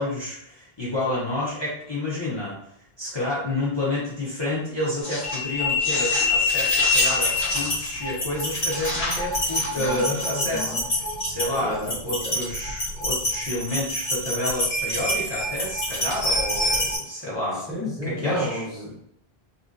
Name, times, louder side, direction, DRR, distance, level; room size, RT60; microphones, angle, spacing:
voice 1, 0.0-2.6 3.0-17.6 18.0-18.6, left 1 dB, 30° left, -7 dB, 0.8 m, -29 dB
sound 1, 5.0-17.0, left 2 dB, 80° left, 1.5 m, -26 dB
voice 2, 9.7-10.8 11.6-11.9 12.2-12.4 17.7-19.0, left 1 dB, ahead, -7 dB, 0.8 m, -31 dB
2.9 x 2.7 x 2.5 m, 0.70 s
omnidirectional pair, 1.0 m